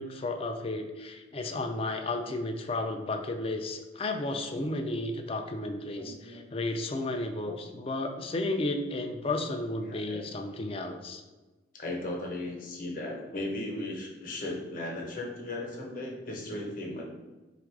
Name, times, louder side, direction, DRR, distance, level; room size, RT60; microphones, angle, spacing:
voice 1, 0.0-11.2, left 2 dB, 30° left, 6 dB, 0.3 m, -33 dB
voice 2, 5.9-6.4 7.4-7.6 9.8-10.2 11.7-17.0, left 1 dB, 50° left, -1 dB, 0.8 m, -37 dB
3.8 x 2.4 x 4.6 m, 1.2 s
head